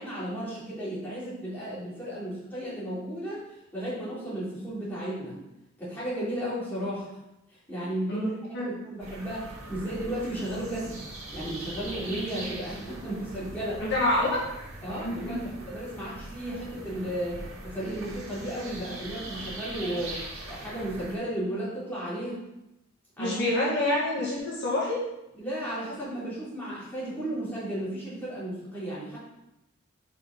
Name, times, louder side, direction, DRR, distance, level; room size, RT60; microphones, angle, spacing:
voice 1, 0.0-3.4 3.7-5.4 5.8-7.2 7.5-8.3 8.6-11.0 11.3-13.8 14.8-20.2 20.5-22.4 23.2-23.4 25.3-29.2, right 1 dB, 10° left, -9 dB, 3.0 m, -34 dB
voice 2, 8.1-8.7 13.8-14.4 15.0-15.4 23.2-25.0, left 1 dB, 55° left, -6 dB, 2.0 m, -27 dB
sound 1, 9.0-21.2, right 1 dB, 75° right, 2.1 m, -41 dB
5.4 x 5.2 x 5.6 m, 0.89 s
head